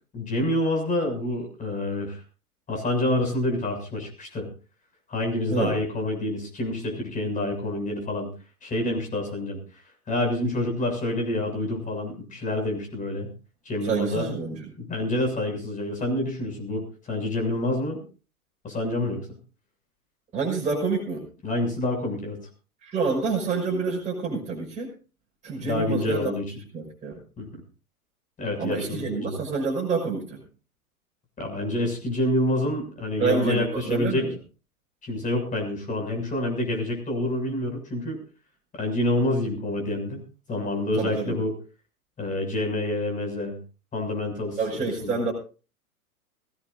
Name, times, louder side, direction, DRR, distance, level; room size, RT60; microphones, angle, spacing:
voice 1, 0.1-2.2 2.7-4.5 5.1-8.3 8.6-9.6 10.1-13.3 13.7-14.3 14.8-18.0 18.6-19.3 21.4-22.4 25.6-26.5 27.4-27.5 28.4-29.4 31.4-34.3 35.0-38.2 38.7-40.2 40.5-41.5 42.2-43.6 43.9-44.6 45.0-45.1, left 1 dB, 15° left, 3 dB, 6.9 m, -27 dB
voice 2, 13.8-14.7 20.3-21.2 22.8-24.9 25.4-26.3 26.7-27.2 28.6-30.4 33.2-34.3 41.0-41.4 44.6-45.3, right 4 dB, 15° right, -3 dB, 6.0 m, -27 dB
21.5 x 17.5 x 2.6 m, 0.35 s
figure-of-eight pair, 105°, 44 cm